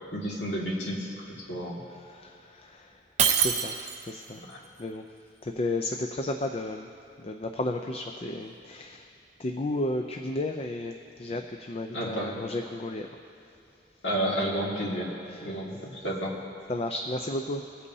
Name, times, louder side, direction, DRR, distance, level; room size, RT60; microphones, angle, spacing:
voice 1, 0.1-1.8 4.4-4.6 11.9-12.4 14.0-15.1 15.4-16.4, right 1 dB, 85° left, -3 dB, 2.0 m, -31 dB
voice 2, 2.1-2.9 3.4-3.7 4.1-4.4 4.8-5.1 5.4-6.9 7.2-9.1 9.4-10.9 11.2-13.1 15.3-15.5 16.7-17.7, left 2 dB, 35° left, 4 dB, 0.4 m, -33 dB
Shatter, 3.2-4.2, right 8 dB, 40° right, 0.6 m, -25 dB
22.0 x 8.4 x 2.7 m, 2.7 s
head